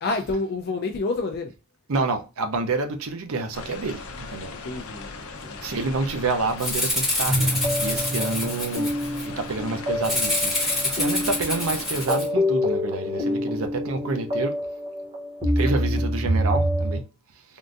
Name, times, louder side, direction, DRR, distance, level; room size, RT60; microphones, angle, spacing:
voice 1, 0.0-1.5 4.5-5.1 5.4-5.7, left 3 dB, 50° left, 0.4 m, -28 dB
voice 2, 1.9-4.5 5.6-8.9 9.2-14.6 15.6-17.0, right 3 dB, 70° right, 0.6 m, -28 dB
sound 1, 3.5-12.1, left 3 dB, 75° left, 0.7 m, -38 dB
Rattle (instrument), 6.6-9.2 10.0-12.3, left 1 dB, ahead, 1.2 m, -26 dB
sound 2, 7.3-17.0, equal, 25° right, 0.7 m, -26 dB
3.6 x 2.5 x 2.4 m
head